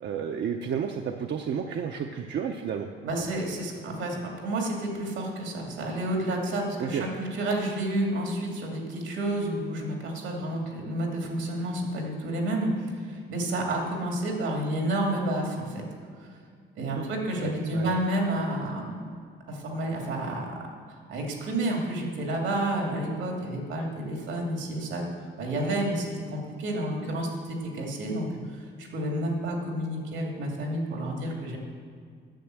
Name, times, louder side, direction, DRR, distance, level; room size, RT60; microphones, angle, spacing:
voice 1, 0.0-2.9 6.8-7.1 16.9-17.1 17.4-18.0, right 7 dB, 65° right, 3 dB, 0.7 m, -31 dB
voice 2, 3.0-15.8 16.2-16.3 16.8-19.0 19.5-20.5 21.1-25.0 25.4-31.6, right 1 dB, 90° right, 0 dB, 2.5 m, -30 dB
9.2 x 7.0 x 7.6 m, 2.2 s
cardioid pair, 90°, 20 cm